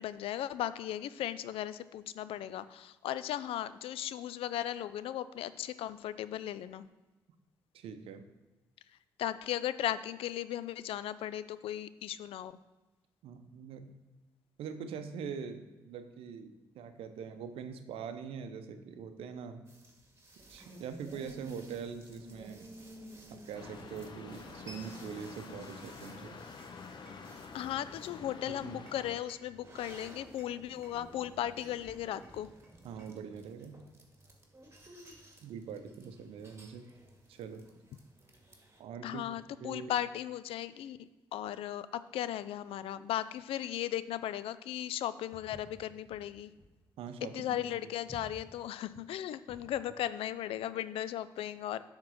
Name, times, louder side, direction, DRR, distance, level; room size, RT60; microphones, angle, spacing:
voice 1, 0.0-6.9 9.2-12.5 27.5-32.5 39.0-41.0 41.3-46.5 47.3-51.8, left 12 dB, 65° left, 15 dB, 0.4 m, -37 dB
voice 2, 7.7-8.3 13.2-13.9 14.6-19.6 20.5-22.7 23.3-26.4 28.6-28.9 32.8-33.8 35.4-36.9 37.3-37.8 38.8-39.3 39.6-39.9 47.0-47.9, right 6 dB, 70° right, 9 dB, 0.7 m, -43 dB
sound 1, 19.7-38.8, right 1 dB, 25° right, 1.8 m, -54 dB
sound 2, 23.5-29.2, left 5 dB, 50° left, 0.8 m, -48 dB
Walk footsteps, 45.3-49.8, left 1 dB, 25° left, 1.5 m, -53 dB
7.3 x 3.7 x 6.4 m, 1.2 s
hypercardioid pair, 40°, 10 cm